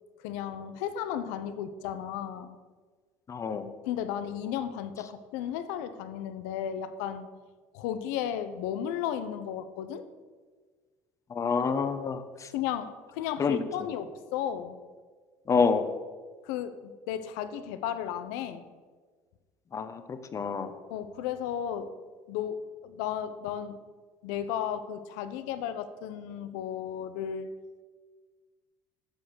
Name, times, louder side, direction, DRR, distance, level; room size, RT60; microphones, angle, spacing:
voice 1, 0.2-2.6 3.9-7.3 7.7-10.0 12.5-14.8 16.4-18.6 20.9-21.9 22.3-23.8 24.2-27.5, left 9 dB, 80° left, 12 dB, 0.9 m, -34 dB
voice 2, 3.3-3.7 11.3-12.5 13.4-13.6 15.5-15.9 19.7-20.7, left 5 dB, 35° left, 10 dB, 1.2 m, -28 dB
12.0 x 7.1 x 6.5 m, 1.5 s
supercardioid pair, 80°, 9 cm